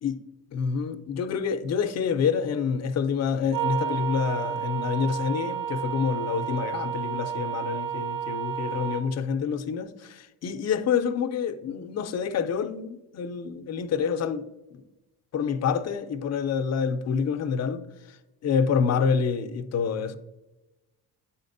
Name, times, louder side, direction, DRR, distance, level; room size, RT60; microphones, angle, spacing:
voice 1, 0.5-14.4 14.7-14.8 15.3-18.2 18.4-20.2, left 6 dB, 40° left, 0.5 m, -27 dB
sound 1, 3.5-9.0, right 9 dB, 35° right, 0.5 m, -31 dB
8.8 x 4.2 x 2.6 m
cardioid pair, 95°, 39 cm